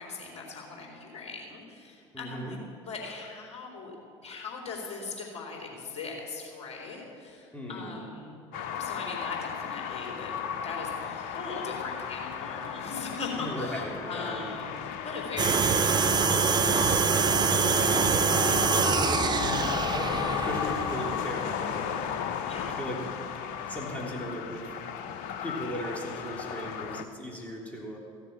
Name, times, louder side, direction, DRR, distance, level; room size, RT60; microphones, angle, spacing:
voice 1, 0.0-2.6 2.9-4.0 4.2-8.4 8.8-10.3 10.6-18.8 22.5-22.8, left 4 dB, 40° left, 0 dB, 3.9 m, -40 dB
voice 2, 2.1-2.6 7.5-8.0 13.3-14.6 19.3-22.0 22.7-23.0 23.7-24.8 25.4-28.0, equal, 10° left, -2 dB, 3.4 m, -37 dB
sound 1, 8.5-27.0, left 8 dB, 60° left, 0.8 m, -34 dB
sound 2, 15.4-21.2, right 6 dB, 25° right, 0.6 m, -25 dB
16.0 x 7.3 x 7.4 m, 2.6 s
figure-of-eight pair, 65°, 16 cm